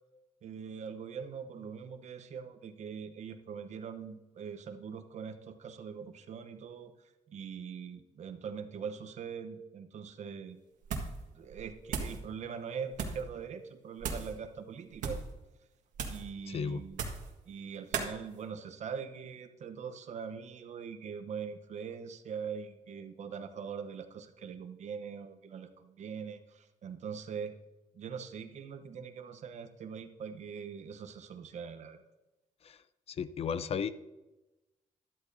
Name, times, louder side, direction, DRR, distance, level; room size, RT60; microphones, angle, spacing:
voice 1, 0.4-6.9 7.3-10.6 11.3-15.2 16.1-17.0 17.5-27.5 27.9-32.0, right 6 dB, 60° right, 7 dB, 0.9 m, -42 dB
sound 1, 10.8-11.2 11.5-12.2 12.9-13.3 14.0-14.3 14.9-15.3 15.9-16.3 16.9-17.3 17.9-18.1, right 5 dB, 85° right, 1.6 m, -36 dB
voice 2, 16.5-16.8 32.6-32.8 33.1-33.9, left 6 dB, 50° left, 14 dB, 0.5 m, -34 dB
12.5 x 12.0 x 2.7 m, 1.0 s
cardioid pair, 105°, 13 cm